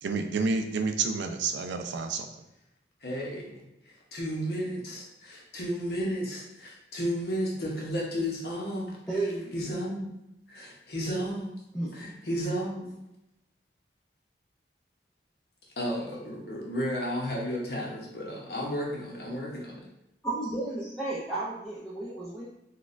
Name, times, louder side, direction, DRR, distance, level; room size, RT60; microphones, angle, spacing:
voice 1, 0.0-2.3, right 4 dB, 85° right, 6 dB, 0.4 m, -29 dB
voice 2, 3.0-9.2 9.5-10.1 10.5-11.6 11.9-13.0 15.8-19.9, equal, 60° left, -3 dB, 0.8 m, -33 dB
voice 3, 9.1-9.6 11.7-12.0 20.2-22.4, right 2 dB, 5° left, -9 dB, 0.4 m, -32 dB
4.0 x 2.3 x 2.5 m, 0.90 s
head